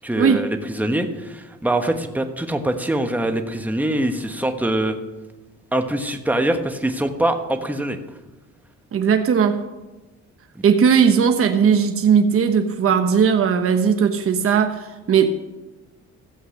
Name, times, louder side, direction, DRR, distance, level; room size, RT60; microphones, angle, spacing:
voice 1, 0.0-5.0 5.7-8.0 10.5-10.6, right 1 dB, 5° right, 5 dB, 1.3 m, -23 dB
voice 2, 8.9-9.6 10.6-15.3, right 7 dB, 45° right, 6 dB, 1.0 m, -18 dB
15.0 x 7.9 x 6.5 m, 1.1 s
cardioid pair, 90°, 30 cm